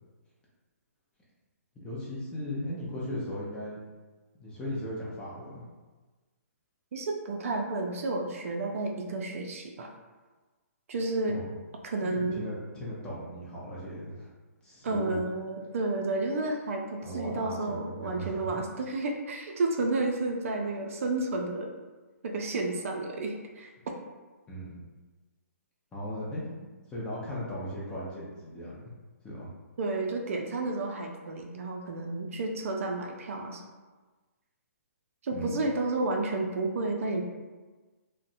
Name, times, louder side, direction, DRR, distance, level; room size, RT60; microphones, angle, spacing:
voice 1, 1.8-3.8 4.4-5.6 11.3-11.4 12.2-14.3 14.6-15.2 17.0-18.5 24.5-24.8 25.9-28.8 29.2-29.5 35.3-35.6, equal, 10° left, -7 dB, 0.6 m, -37 dB
voice 2, 6.9-9.9 10.9-11.4 11.8-12.4 14.8-21.7 22.2-23.7 29.8-33.6 35.2-37.2, right 2 dB, 60° right, 1 dB, 0.4 m, -31 dB
2.6 x 2.1 x 2.5 m, 1.3 s
hypercardioid pair, 140°, 8 cm